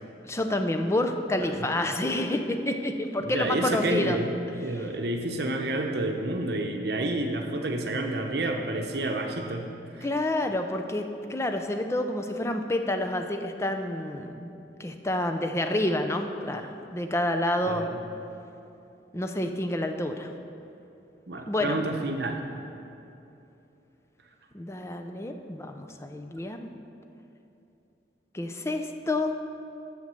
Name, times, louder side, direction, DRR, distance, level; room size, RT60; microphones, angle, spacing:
voice 1, 0.2-4.2 10.0-14.5 14.8-17.9 19.1-20.3 21.5-21.8 24.5-26.7 28.3-29.3, left 1 dB, 15° left, 6 dB, 0.5 m, -28 dB
voice 2, 3.2-10.1 17.6-18.0 21.3-22.5, right 2 dB, 60° right, 3 dB, 0.8 m, -30 dB
8.0 x 6.5 x 6.8 m, 2.8 s
head